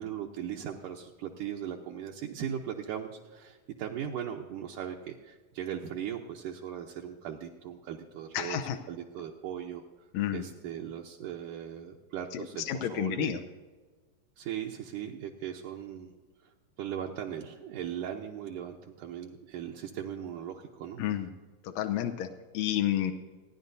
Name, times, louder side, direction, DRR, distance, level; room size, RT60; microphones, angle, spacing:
voice 1, 0.0-8.6 8.9-9.8 10.3-13.3 14.4-16.1 16.8-21.0, right 9 dB, 75° right, 0 dB, 2.2 m, -38 dB
voice 2, 8.3-8.8 10.1-10.5 12.3-13.4 21.0-21.3 21.6-23.1, left 11 dB, 80° left, 5 dB, 1.6 m, -31 dB
30.0 x 10.5 x 2.7 m, 1.4 s
omnidirectional pair, 4.1 m